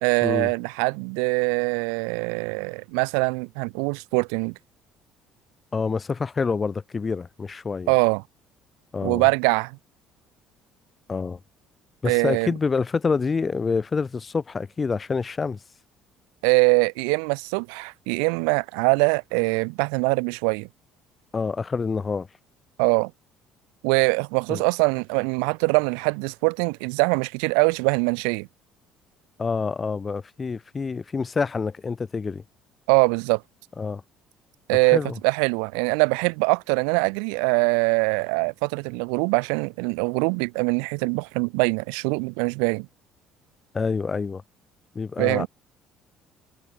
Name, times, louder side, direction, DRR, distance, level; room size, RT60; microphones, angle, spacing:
voice 1, 0.0-4.5 7.9-8.2 9.0-9.8 12.0-12.5 16.4-20.7 22.8-23.1 23.8-28.5 32.9-33.4 34.7-42.9 45.2-45.5, right 40 dB or more, 80° right, 0.4 m, -23 dB
voice 2, 5.7-7.9 8.9-9.3 11.1-11.4 12.0-15.6 21.3-22.3 24.5-24.6 29.4-32.4 33.8-34.0 34.9-35.2 43.7-44.4 44.9-45.5, left 5 dB, 30° left, 1.3 m, -27 dB
hypercardioid pair, 65°, 0 cm